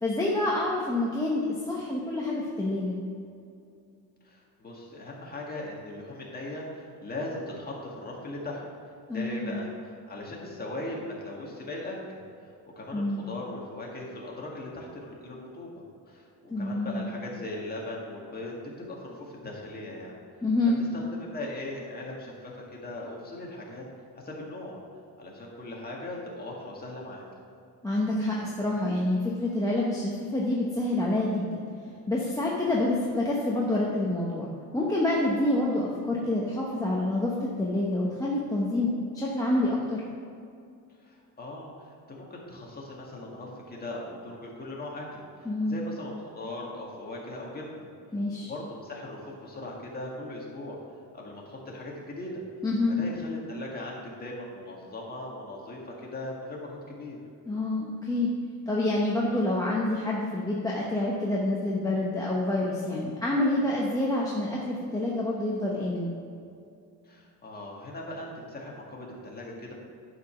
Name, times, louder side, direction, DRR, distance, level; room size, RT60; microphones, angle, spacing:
voice 1, 0.0-3.0 9.1-9.6 12.9-13.3 16.5-17.1 20.4-20.8 27.8-31.6 32.1-40.0 45.4-45.8 48.1-48.5 52.6-53.0 57.5-58.3 58.7-66.1, left 2 dB, 10° left, -5 dB, 0.8 m, -27 dB
voice 2, 4.2-8.6 9.1-20.1 20.9-23.8 24.1-24.8 25.2-27.2 41.0-47.9 48.5-50.8 51.1-52.4 52.9-57.2 67.1-69.7, left 1 dB, 25° left, -3 dB, 1.8 m, -39 dB
11.0 x 5.1 x 5.7 m, 2.5 s
cardioid pair, 160°, 36 cm